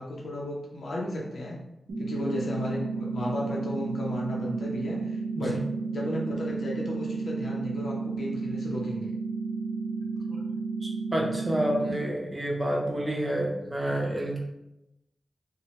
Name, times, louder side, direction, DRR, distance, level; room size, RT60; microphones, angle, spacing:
voice 1, 0.0-1.6 2.0-5.6 5.9-9.1, left 1 dB, 75° left, -3 dB, 0.6 m, -34 dB
sound 1, 1.9-11.9, right 4 dB, 70° right, 0.6 m, -32 dB
voice 2, 10.8-14.4, right 1 dB, 20° right, -1 dB, 0.6 m, -29 dB
3.0 x 2.1 x 2.8 m, 0.89 s
wide cardioid pair, 160°, 0 cm